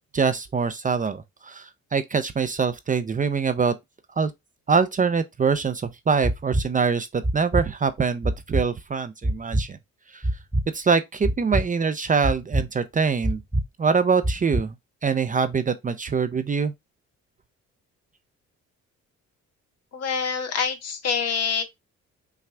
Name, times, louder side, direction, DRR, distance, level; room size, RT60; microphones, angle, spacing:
voice 1, 0.1-3.7 4.2-4.3 4.7-9.8 10.1-10.2 10.7-13.4 13.8-14.7 15.0-16.7, right 5 dB, 25° right, 0.5 m, -24 dB
sound 1, 6.2-6.6 7.2-7.6 8.2-8.6 9.2-9.6 10.2-10.6 11.2-11.6 12.2-12.6 13.2-13.6 14.2-14.6, right 1 dB, 5° right, 1.3 m, -23 dB
voice 2, 19.9-21.6, left 6 dB, 55° left, 1.2 m, -26 dB
5.8 x 2.4 x 3.2 m
cardioid pair, 90°, 30 cm